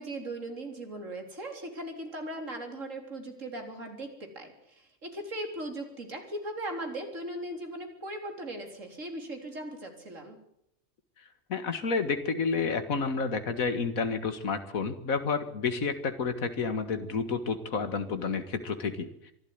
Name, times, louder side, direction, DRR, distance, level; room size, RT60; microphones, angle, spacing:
voice 1, 0.0-10.4, right 1 dB, 65° right, 4 dB, 4.0 m, -38 dB
voice 2, 11.5-19.3, left 5 dB, 80° left, 9 dB, 2.1 m, -30 dB
24.5 x 12.0 x 9.5 m, 0.74 s
omnidirectional pair, 1.4 m